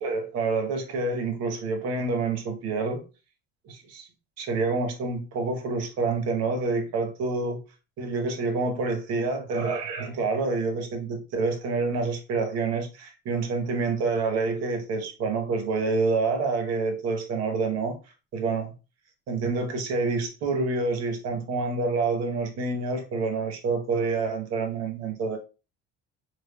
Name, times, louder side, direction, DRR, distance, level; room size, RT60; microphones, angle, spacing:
voice 1, 0.0-3.0 3.6-4.1 4.4-7.6 8.0-18.0 18.3-18.7 19.3-25.4, right 3 dB, 60° right, 1.0 m, -27 dB
3.4 x 3.0 x 2.2 m
cardioid pair, 130°, 29 cm